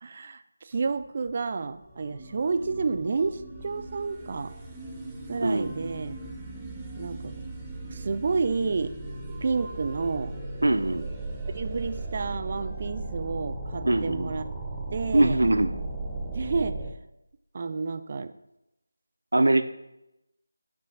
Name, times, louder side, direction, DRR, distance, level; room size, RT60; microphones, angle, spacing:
voice 1, 0.0-4.5 5.3-6.1 7.0-7.4 7.9-8.9 9.4-10.4 11.5-14.4 14.9-15.5 16.3-16.8 17.5-18.3, right 4 dB, 35° right, 11 dB, 0.4 m, -30 dB
sound 1, 0.7-0.8 1.3-1.4 1.6-16.9, right 2 dB, 5° right, 0.7 m, -37 dB
voice 2, 5.4-5.7 10.6-11.1 13.8-14.3 15.1-15.7 19.3-19.6, right 2 dB, 85° right, 9 dB, 0.6 m, -22 dB
7.8 x 3.3 x 6.3 m, 0.88 s
figure-of-eight pair, 170°, 0 cm